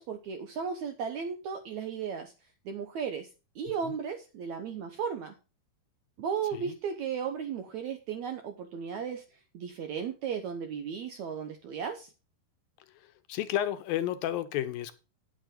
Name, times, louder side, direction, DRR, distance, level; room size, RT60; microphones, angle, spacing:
voice 1, 0.0-2.3 2.6-3.3 3.5-5.3 6.2-9.2 9.5-12.1, right 7 dB, 75° right, 7 dB, 1.7 m, -35 dB
voice 2, 12.9-14.9, left 12 dB, 75° left, 11 dB, 2.4 m, -32 dB
9.7 x 7.7 x 5.1 m, 0.31 s
omnidirectional pair, 4.4 m